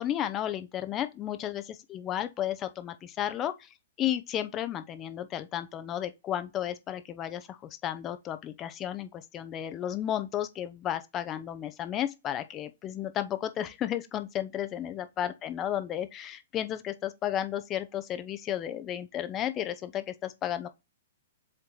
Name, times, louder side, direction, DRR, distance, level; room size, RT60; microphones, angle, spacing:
voice 1, 0.0-3.7 4.0-20.7, left 11 dB, 25° left, 0.7 m, -33 dB
7.7 x 3.1 x 3.9 m
hypercardioid pair, 125°, 0 cm